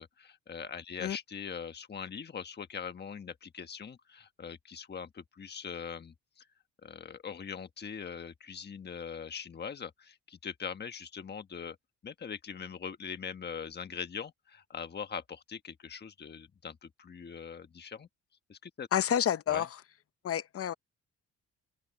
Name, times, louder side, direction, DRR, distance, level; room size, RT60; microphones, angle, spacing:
voice 1, 0.0-6.5 6.8-11.8 12.0-18.1 18.5-18.9 19.5-19.7, left 6 dB, 35° left, 1.3 m, -42 dB
voice 2, 18.9-19.7 20.2-20.7, left 9 dB, 50° left, 0.9 m, -29 dB
open air
cardioid pair, 90°, 30 cm